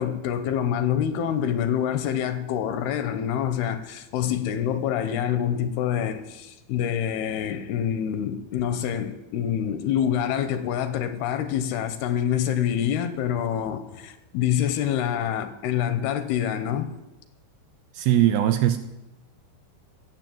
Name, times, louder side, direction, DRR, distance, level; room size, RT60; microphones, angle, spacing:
voice 1, 0.0-16.9, left 9 dB, 80° left, 2.5 m, -26 dB
voice 2, 17.9-18.8, right 12 dB, 80° right, 2.3 m, -20 dB
17.0 x 7.4 x 7.6 m
omnidirectional pair, 4.9 m